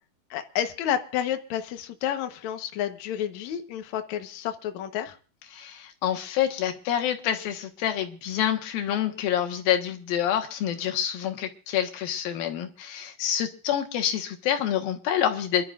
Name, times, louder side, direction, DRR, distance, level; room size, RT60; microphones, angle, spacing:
voice 1, 0.3-5.2, left 10 dB, 60° left, 2.2 m, -30 dB
voice 2, 5.5-15.6, left 10 dB, 80° left, 3.2 m, -27 dB
27.5 x 12.0 x 2.5 m
omnidirectional pair, 4.1 m